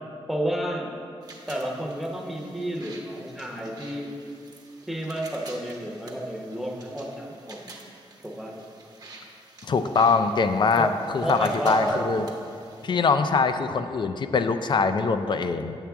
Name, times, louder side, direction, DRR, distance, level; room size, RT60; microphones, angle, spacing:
voice 1, 0.3-0.9 1.5-4.1 4.9-7.7 8.2-8.5 10.7-10.9 11.2-12.0, right 1 dB, ahead, -1 dB, 0.8 m, -30 dB
sound 1, 1.2-12.9, right 2 dB, 40° right, 0.9 m, -48 dB
voice 2, 9.6-12.2 12.8-15.8, left 4 dB, 50° left, 9 dB, 0.4 m, -23 dB
8.6 x 7.3 x 3.4 m, 2.4 s
wide cardioid pair, 175°, 10 cm